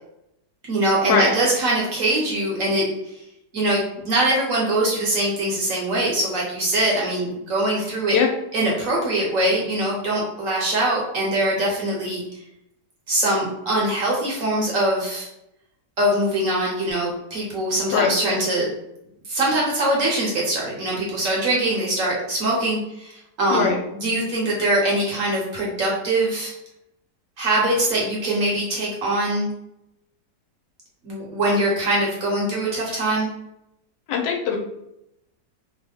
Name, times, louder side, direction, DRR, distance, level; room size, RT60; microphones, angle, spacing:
voice 1, 0.7-2.8 3.5-8.2 8.5-12.2 13.1-15.3 16.0-18.7 19.3-23.1 23.4-26.5 27.4-29.5 31.0-33.3, right 1 dB, 60° right, -3 dB, 1.0 m, -22 dB
voice 2, 34.1-34.6, left 7 dB, 85° left, 1 dB, 1.3 m, -20 dB
3.0 x 2.1 x 3.3 m, 0.83 s
omnidirectional pair, 1.9 m